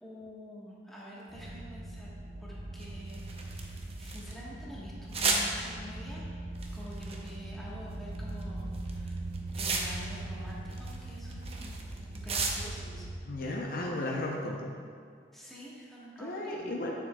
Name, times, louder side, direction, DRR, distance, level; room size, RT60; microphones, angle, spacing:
voice 1, 0.0-2.1 2.4-6.3 6.7-9.2 9.6-11.7 12.1-13.1 15.3-16.6, equal, ahead, -7 dB, 1.4 m, -47 dB
sound 1, 1.3-13.1, right 2 dB, 70° right, 1.3 m, -41 dB
sound 2, 2.8-4.3 5.1-5.5 6.6-7.3 8.2-8.4 8.7-10.2 10.5-12.8, right 4 dB, 35° right, 0.7 m, -33 dB
voice 2, 13.3-14.6 16.2-16.9, left 1 dB, 50° left, -2 dB, 0.7 m, -34 dB
9.0 x 7.2 x 2.3 m, 2.2 s
head